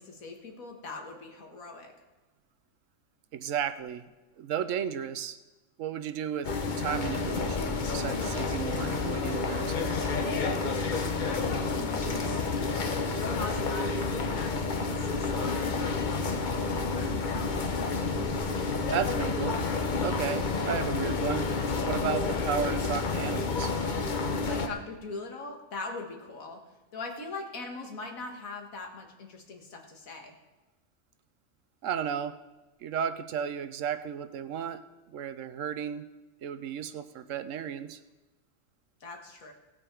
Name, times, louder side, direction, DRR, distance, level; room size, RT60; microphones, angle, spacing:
voice 1, 0.0-1.9 11.3-17.2 24.5-26.6 26.9-30.4 39.0-39.5, left 3 dB, 85° left, 2 dB, 2.0 m, -41 dB
voice 2, 3.3-5.4 5.8-9.9 18.9-19.6 20.0-21.5 21.8-23.7 31.8-32.4 32.8-34.8 35.1-36.1 36.4-38.0, right 8 dB, 70° right, 12 dB, 1.0 m, -34 dB
sound 1, 6.4-24.7, left 4 dB, 40° left, 0.9 m, -30 dB
17.0 x 8.0 x 4.6 m, 1.1 s
omnidirectional pair, 1.4 m